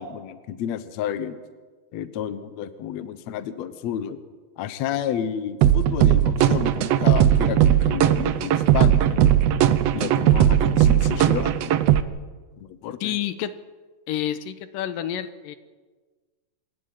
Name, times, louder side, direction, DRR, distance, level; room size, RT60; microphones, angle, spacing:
voice 1, 0.0-1.4 1.9-4.2 4.6-9.4 9.9-11.5 12.6-13.2, left 9 dB, 65° left, 12 dB, 2.0 m, -31 dB
sound 1, 5.6-12.0, right 10 dB, 80° right, 1.4 m, -18 dB
voice 2, 13.0-13.5 14.1-15.6, left 11 dB, 85° left, 12 dB, 2.5 m, -29 dB
26.5 x 12.0 x 9.3 m, 1.4 s
omnidirectional pair, 3.9 m